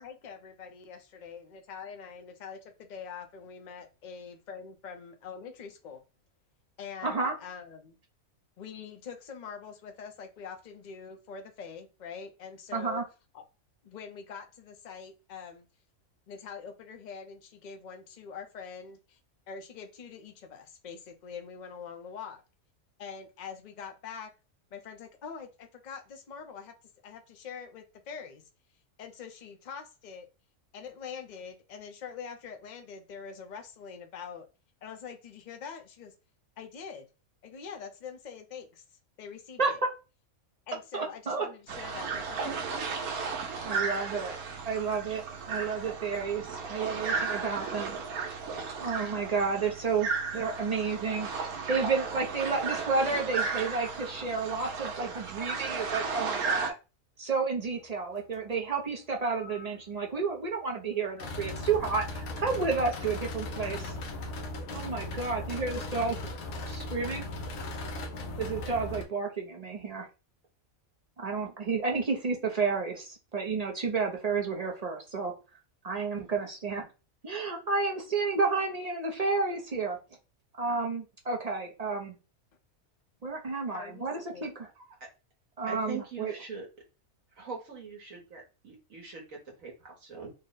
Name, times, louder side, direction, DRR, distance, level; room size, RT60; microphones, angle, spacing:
voice 1, 0.0-6.0 6.8-8.0 8.6-13.0 13.3-13.4 13.8-15.7 16.3-19.2 19.5-22.4 23.0-24.3 24.7-26.7 27.0-28.4 29.0-30.3 30.7-34.5 34.8-36.1 36.6-37.1 37.4-38.8 39.2-39.8 40.7-42.7 83.7-84.1 84.3-84.5, left 6 dB, 45° left, 5 dB, 0.6 m, -44 dB
voice 2, 7.0-7.3 12.7-13.0 39.6-39.9 40.9-41.5 43.6-44.4 44.6-48.0 48.8-56.7 57.2-63.9 64.7-66.2 66.7-67.3 68.4-70.1 71.2-75.3 75.8-76.9 77.2-80.0 80.6-82.1 83.2-84.7 85.6-86.3, right 4 dB, 45° right, 1 dB, 0.5 m, -31 dB
sound 1, 41.7-56.7, right 5 dB, 90° right, 1.3 m, -34 dB
sound 2, 59.3-59.7 61.2-69.0, left 2 dB, 80° left, 1.2 m, -37 dB
voice 3, 85.6-86.7 87.3-90.3, right 5 dB, 70° right, -1 dB, 1.3 m, -42 dB
3.9 x 2.1 x 3.8 m, 0.31 s
omnidirectional pair, 1.5 m